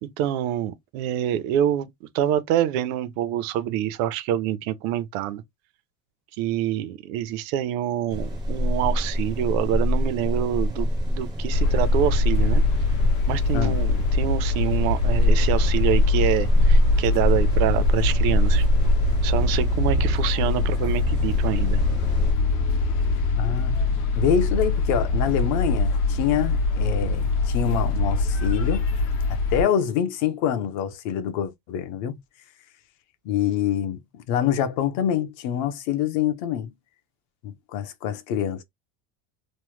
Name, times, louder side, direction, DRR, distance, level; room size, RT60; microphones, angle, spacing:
voice 1, 0.0-1.9 2.1-5.4 6.4-12.6 13.3-18.6 19.2-21.8, right 11 dB, 80° right, 0.7 m, -26 dB
sound 1, 8.1-22.3, left 1 dB, 10° right, 0.4 m, -24 dB
sound 2, 11.5-29.6, left 3 dB, 80° left, 1.0 m, -23 dB
voice 2, 23.3-23.8 24.2-28.9 29.3-32.2 33.2-36.7 37.4-38.6, left 9 dB, 50° left, 0.5 m, -26 dB
3.1 x 2.0 x 3.0 m
cardioid pair, 180°, 40 cm